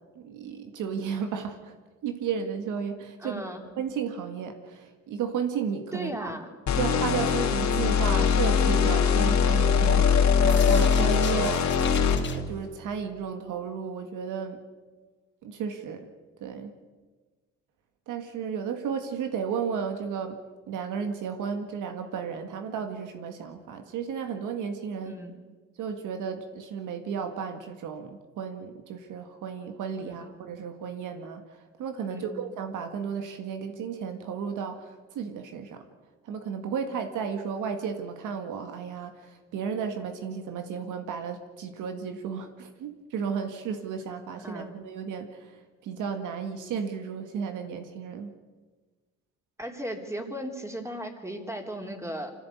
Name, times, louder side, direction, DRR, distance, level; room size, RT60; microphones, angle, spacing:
voice 1, 0.2-1.7 2.0-3.4 3.8-6.3 6.8-11.5 12.3-14.6 15.4-16.1 16.4-16.7 18.1-20.4 20.7-25.2 25.8-35.8 36.2-45.5 45.8-48.3, right 6 dB, 85° right, 6 dB, 1.9 m, -33 dB
voice 2, 3.2-3.6 5.9-6.5 11.3-11.7 25.1-25.4 30.0-30.1 32.1-32.4 44.4-44.7 49.6-52.3, equal, 10° right, 3 dB, 3.5 m, -36 dB
sound 1, 6.7-12.4, left 7 dB, 65° left, 3.5 m, -22 dB
sound 2, 9.2-12.4, left 5 dB, 40° left, 1.2 m, -30 dB
25.0 x 15.5 x 8.6 m, 1.4 s
cardioid pair, 90°, 30 cm